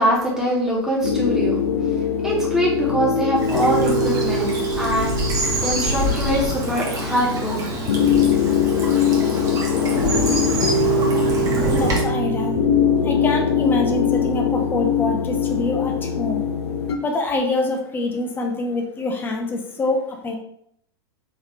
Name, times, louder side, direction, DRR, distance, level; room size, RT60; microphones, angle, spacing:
voice 1, 0.0-1.6 2.2-7.6 12.9-13.2, equal, 5° right, -5 dB, 1.4 m, -23 dB
sound 1, 1.0-17.0, left 5 dB, 70° left, 0.5 m, -22 dB
Bird vocalization bird call bird song / Stream, 3.4-12.0, right 1 dB, 25° right, 1.0 m, -26 dB
voice 2, 11.7-12.6 13.0-16.4 17.0-20.4, left 2 dB, 15° left, 2 dB, 0.7 m, -25 dB
3.9 x 3.0 x 3.5 m, 0.69 s
figure-of-eight pair, 90°, 14 cm